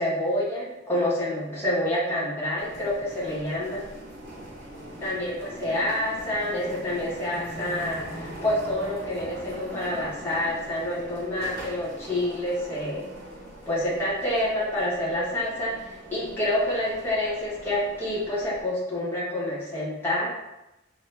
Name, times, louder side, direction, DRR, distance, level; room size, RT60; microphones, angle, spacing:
voice 1, 0.0-3.8 5.0-13.0 13.7-20.3, left 1 dB, 10° left, -8 dB, 1.1 m, -28 dB
sound 1, 2.6-18.6, right 1 dB, 55° right, 1.0 m, -42 dB
3.6 x 2.8 x 3.3 m, 0.93 s
head